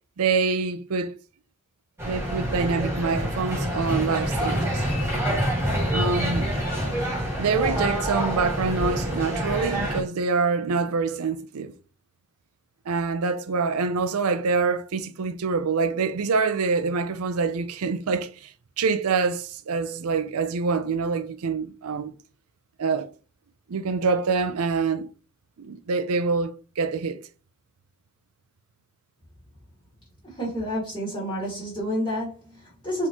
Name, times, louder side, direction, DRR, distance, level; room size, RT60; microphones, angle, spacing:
voice 1, 0.2-1.1 2.0-4.8 5.9-6.5 7.4-11.8 12.9-18.5 18.8-22.1 22.8-23.1 23.7-25.1 25.6-27.2, right 4 dB, 80° right, 0.5 m, -25 dB
sound 1, 2.0-10.0, equal, 10° right, 1.8 m, -26 dB
voice 2, 30.3-33.1, equal, 20° left, 1.9 m, -29 dB
4.2 x 3.6 x 3.0 m
head